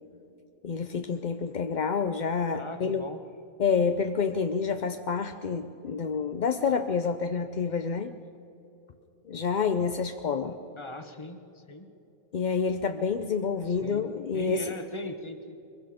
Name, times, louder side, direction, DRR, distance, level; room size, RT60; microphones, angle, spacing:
voice 1, 0.6-3.0 3.6-8.1 9.3-10.6 12.3-14.7, left 5 dB, 55° left, 8 dB, 0.5 m, -28 dB
voice 2, 2.5-3.2 10.8-11.9 13.6-14.1 14.3-15.6, left 2 dB, 20° left, 7 dB, 1.2 m, -39 dB
23.0 x 22.0 x 5.1 m, 2.8 s
omnidirectional pair, 1.5 m